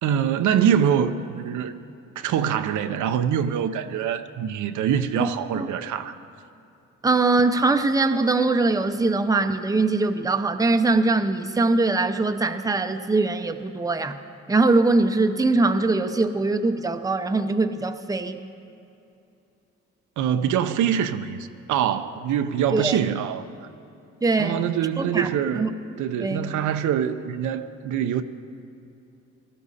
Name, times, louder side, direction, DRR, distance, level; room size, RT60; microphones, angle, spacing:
voice 1, 0.0-1.7 2.2-6.2 20.2-23.7 24.4-25.7 26.0-28.2, right 9 dB, 80° right, 0.7 m, -24 dB
voice 2, 7.0-14.2 14.5-18.4 22.7-23.0 24.2-24.6 25.0-25.3 25.5-25.7 26.2-26.5, right 3 dB, 10° right, 0.7 m, -22 dB
18.0 x 14.0 x 4.2 m
cardioid pair, 90°, 30 cm